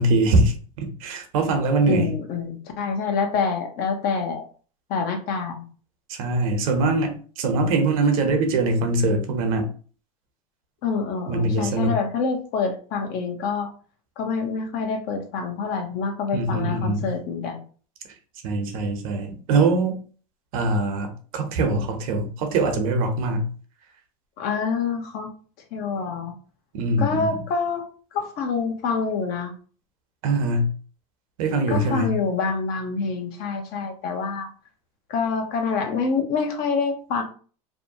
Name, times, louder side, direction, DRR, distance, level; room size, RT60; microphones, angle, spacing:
voice 1, 0.0-2.1 6.1-9.7 11.3-11.9 16.3-17.1 18.4-20.0 20.5-23.5 26.7-27.4 30.2-30.7 31.4-32.2, right 2 dB, 70° right, 0.8 m, -23 dB
voice 2, 1.9-4.4 4.9-5.6 10.8-13.7 14.2-17.6 24.4-25.3 25.7-26.3 27.0-27.9 28.1-29.5 31.7-34.5 35.1-37.2, left 5 dB, 55° left, 0.8 m, -26 dB
2.7 x 2.2 x 2.7 m
hypercardioid pair, 90°, 18 cm